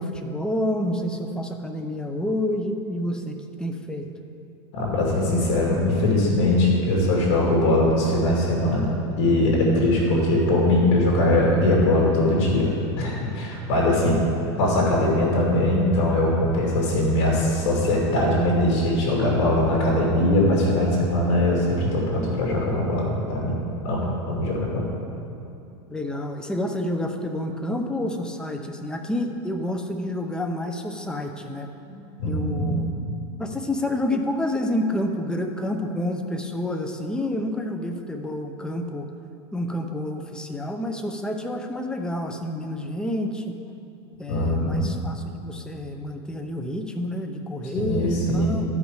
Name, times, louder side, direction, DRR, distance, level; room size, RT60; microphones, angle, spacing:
voice 1, 0.0-4.0 25.9-31.7 32.2-32.9 33.4-39.1 39.5-43.6 44.2-48.6, left 1 dB, 5° left, 4 dB, 0.6 m, -29 dB
voice 2, 4.7-8.9 9.2-12.7 13.0-14.2 14.6-23.5 23.8-24.8 32.2-32.8 44.3-44.8 47.7-48.6, left 1 dB, 60° left, -4 dB, 2.4 m, -21 dB
13.0 x 5.2 x 4.8 m, 2.7 s
supercardioid pair, 135°, 15 cm